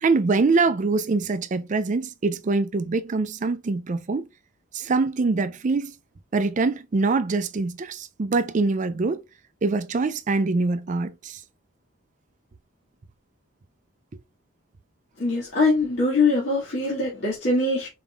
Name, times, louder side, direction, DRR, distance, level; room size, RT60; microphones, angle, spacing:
voice 1, 0.0-4.3 4.7-5.9 6.3-9.2 9.6-11.4, right 3 dB, 35° right, 0.4 m, -24 dB
voice 2, 15.2-17.9, left 3 dB, 55° left, 1.8 m, -22 dB
4.8 x 3.6 x 2.2 m
head